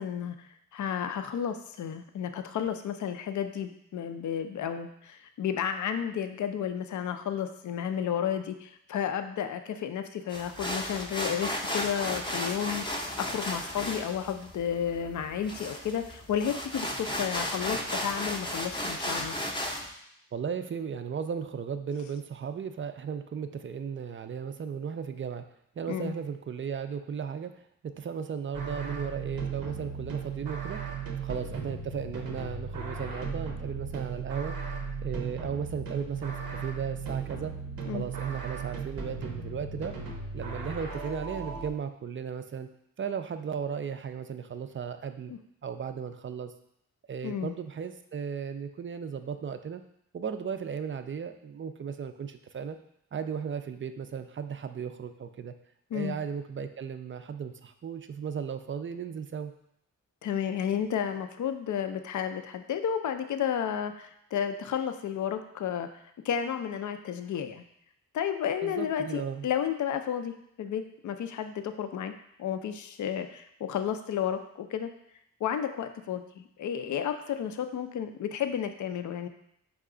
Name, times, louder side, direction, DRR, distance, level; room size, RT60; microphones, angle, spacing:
voice 1, 0.0-19.4 25.9-26.1 37.9-38.1 45.3-45.4 47.2-47.6 55.9-56.2 60.2-65.9 66.2-67.6 68.1-72.1 72.4-74.9 75.4-79.3, left 8 dB, 60° left, 8 dB, 0.4 m, -32 dB
sound 1, 10.3-19.9, left 1 dB, 15° left, 0.6 m, -34 dB
voice 2, 20.3-25.4 25.8-30.8 31.2-34.7 35.0-37.5 37.8-40.0 40.3-42.7 43.0-45.3 45.6-46.5 47.1-49.8 50.1-52.8 53.1-55.5 55.9-59.5 68.6-69.5, right 7 dB, 35° right, 9 dB, 0.4 m, -36 dB
sound 2, 28.5-41.7, right 5 dB, 80° right, 0.7 m, -37 dB
4.8 x 2.3 x 3.7 m, 0.74 s
cardioid pair, 45°, 34 cm